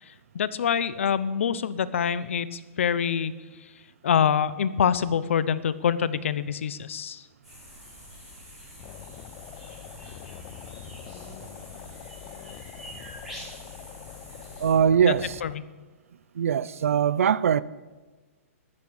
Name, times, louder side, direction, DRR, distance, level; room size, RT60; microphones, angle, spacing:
voice 1, 0.0-3.3 3.6-3.7 4.0-7.3 15.0-15.1 15.4-15.6, left 8 dB, 60° left, 0.8 m, -26 dB
sound 1, 7.4-14.7, equal, 5° right, 6.3 m, -46 dB
sound 2, 8.8-15.6, left 13 dB, 20° left, 0.4 m, -44 dB
voice 2, 14.6-15.4 16.3-17.6, right 8 dB, 70° right, 0.6 m, -21 dB
14.0 x 12.0 x 6.5 m
hypercardioid pair, 175°, 8 cm